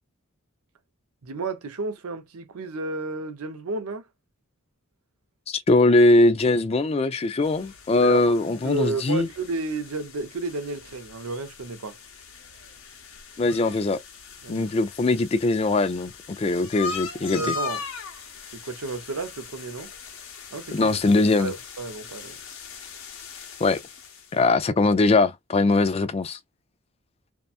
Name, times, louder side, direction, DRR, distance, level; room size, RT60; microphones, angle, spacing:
voice 1, 1.2-4.1 8.0-12.0 14.4-14.7 17.3-17.8 18.5-19.9 20.5-20.9 21.4-22.4, right 3 dB, 85° right, 0.6 m, -32 dB
voice 2, 5.5-9.3 13.4-14.0 14.5-17.5 20.7-21.5 23.6-23.8 24.3-26.4, left 2 dB, 25° left, 0.3 m, -21 dB
sound 1, 7.4-24.4, left 5 dB, 70° left, 0.8 m, -40 dB
2.7 x 2.2 x 2.4 m
head